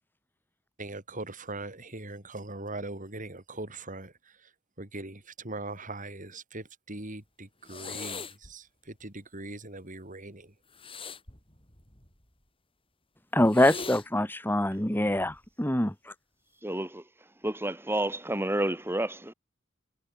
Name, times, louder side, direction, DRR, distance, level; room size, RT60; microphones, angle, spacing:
voice 1, 0.8-4.1 4.8-8.7 9.0-10.5, right 2 dB, 40° right, 7.2 m, -40 dB
sound 1, 7.6-8.5 10.7-12.2 13.4-14.1 15.1-15.5, left 5 dB, 30° left, 7.5 m, -41 dB
voice 2, 13.3-15.9, left 1 dB, 10° left, 2.3 m, -24 dB
voice 3, 16.6-17.0 17.4-19.3, right 1 dB, 10° right, 3.5 m, -30 dB
head